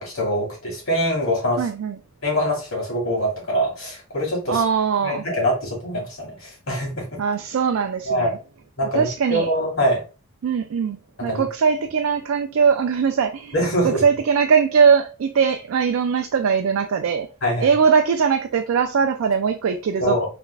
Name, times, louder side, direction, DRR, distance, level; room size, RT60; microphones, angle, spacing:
voice 1, 0.0-1.7 2.2-4.6 5.0-7.1 8.0-8.4 8.8-10.0 11.3-11.4 13.5-14.0 17.4-17.7 20.0-20.3, equal, 70° left, 1.9 m, -24 dB
voice 2, 1.6-2.0 4.5-5.2 7.2-8.4 8.9-9.5 10.4-13.5 13.8-17.3 17.6-20.2, right 6 dB, 70° right, 0.3 m, -20 dB
3.4 x 3.2 x 2.3 m
head